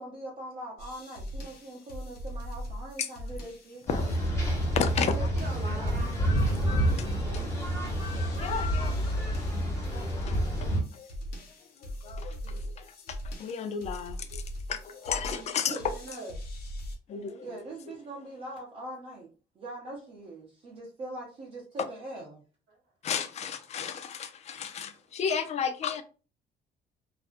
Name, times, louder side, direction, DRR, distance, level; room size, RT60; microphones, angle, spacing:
voice 1, 0.0-3.8 17.4-22.4, right 1 dB, 40° right, 0.7 m, -42 dB
sound 1, 0.8-17.0, equal, 65° left, 0.8 m, -40 dB
voice 2, 3.9-4.2 4.7-5.1 6.7-6.8 8.4-9.0 9.9-11.1 11.8-14.4 14.7-15.8 17.1-17.6 23.0-26.0, left 7 dB, 40° left, 0.4 m, -33 dB
sound 2, 3.9-10.8, equal, 15° left, 1.0 m, -28 dB
voice 3, 4.9-6.0 7.1-7.5 15.7-16.3 22.7-22.8, right 2 dB, 70° right, 1.0 m, -41 dB
2.4 x 2.0 x 2.5 m
cardioid pair, 110°, 17 cm